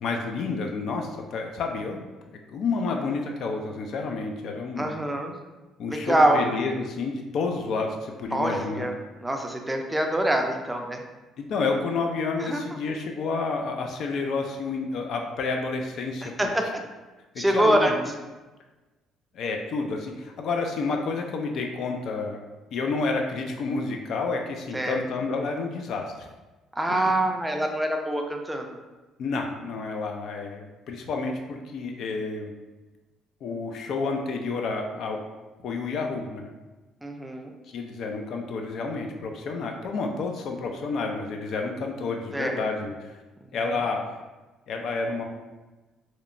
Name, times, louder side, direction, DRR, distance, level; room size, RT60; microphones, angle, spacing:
voice 1, 0.0-2.0 2.5-5.0 5.8-8.9 11.4-16.5 17.3-17.9 19.3-22.4 22.7-26.3 29.2-32.5 33.4-35.2 35.6-36.5 37.7-43.1 43.5-44.0 44.7-45.2, left 4 dB, 65° left, 3 dB, 0.3 m, -30 dB
voice 2, 4.8-5.3 5.9-6.4 8.3-8.9 9.2-11.0 12.4-12.6 16.4-16.7 17.4-17.9 24.7-25.0 26.7-28.7 37.0-37.5 42.3-42.6, right 1 dB, 10° right, 3 dB, 0.4 m, -25 dB
2.8 x 2.1 x 2.5 m, 1.2 s
supercardioid pair, 75°, 0 cm